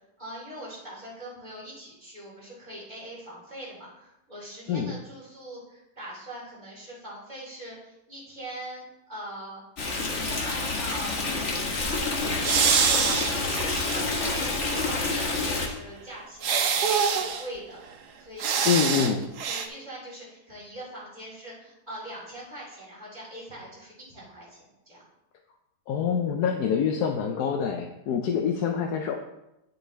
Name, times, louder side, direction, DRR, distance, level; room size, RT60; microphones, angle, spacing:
voice 1, 0.2-9.6 10.2-11.2 11.7-17.8 18.2-25.0, right 1 dB, 25° right, -7 dB, 3.9 m, -42 dB
Stream, 9.8-15.7, left 3 dB, 50° left, 1.5 m, -28 dB
sound 1, 12.4-14.5 14.8-14.9 16.4-17.4 18.4-19.1 19.4-19.7, right 6 dB, 80° right, 1.4 m, -25 dB
voice 2, 18.6-19.2 25.9-29.2, left 7 dB, 75° left, 3 dB, 1.2 m, -26 dB
9.5 x 8.0 x 3.3 m, 0.91 s
omnidirectional pair, 1.7 m